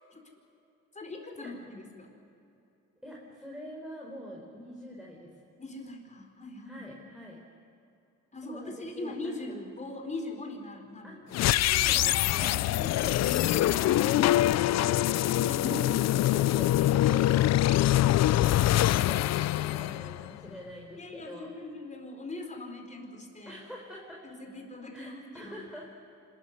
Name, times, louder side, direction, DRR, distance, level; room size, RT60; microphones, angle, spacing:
voice 1, 0.9-2.1 5.6-7.0 8.3-11.8 12.4-12.7 14.8-14.9 15.2-16.0 19.5-19.7 21.0-23.6 24.2-25.6, left 2 dB, 25° left, 2 dB, 4.6 m, -41 dB
voice 2, 3.0-5.4 6.6-7.4 8.4-9.5 11.0-11.2 11.5-15.6 15.9-21.5 23.5-24.2 24.9-25.9, equal, ahead, -3 dB, 4.5 m, -45 dB
sound 1, 11.3-20.5, left 14 dB, 60° left, 0.4 m, -24 dB
26.5 x 13.5 x 9.9 m, 2.7 s
cardioid pair, 90°, 30 cm